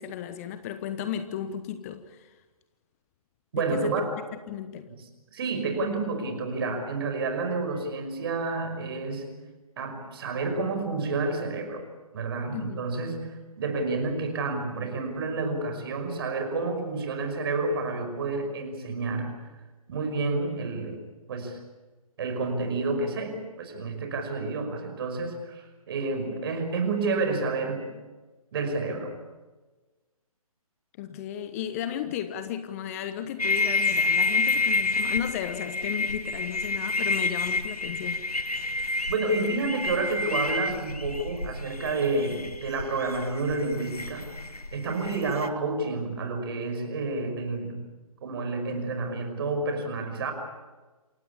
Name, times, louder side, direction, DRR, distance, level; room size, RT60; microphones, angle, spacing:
voice 1, 0.0-2.3 3.5-3.9 4.5-4.9 12.5-12.9 31.0-38.2, left 10 dB, 25° left, 11 dB, 1.1 m, -34 dB
voice 2, 3.5-4.2 4.9-5.0 5.3-9.4 9.8-11.9 12.1-19.3 19.9-21.0 21.3-21.6 22.2-27.9 28.5-29.2 39.1-47.9 48.2-50.3, right 3 dB, 40° right, 6 dB, 5.5 m, -30 dB
sound 1, 33.4-45.5, left 3 dB, 85° left, 1.8 m, -29 dB
28.0 x 16.5 x 8.6 m, 1.2 s
figure-of-eight pair, 135°, 19 cm